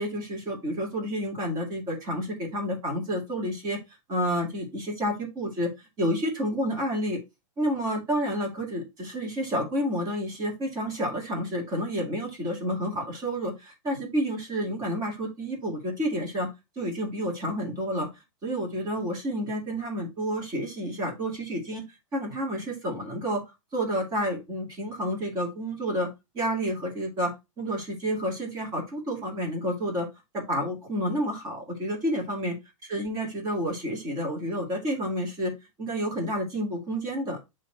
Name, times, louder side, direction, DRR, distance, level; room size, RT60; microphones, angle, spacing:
voice 1, 0.0-3.8 4.1-7.2 7.6-16.5 16.8-18.1 18.4-21.8 22.1-23.4 23.7-26.1 26.3-30.1 30.3-32.6 32.8-35.5 35.8-37.4, equal, 20° right, 0 dB, 2.2 m, -30 dB
6.9 x 3.2 x 4.3 m, 0.24 s
supercardioid pair, 165°, 17 cm